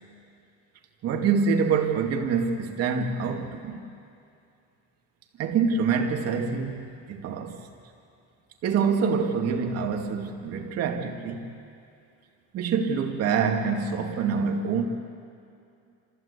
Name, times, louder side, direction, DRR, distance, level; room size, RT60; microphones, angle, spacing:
voice 1, 1.0-3.8 5.4-7.6 8.6-11.5 12.5-14.8, right 5 dB, 55° right, 2.2 m, -26 dB
27.0 x 15.0 x 8.2 m
cardioid pair, 160°, 30 cm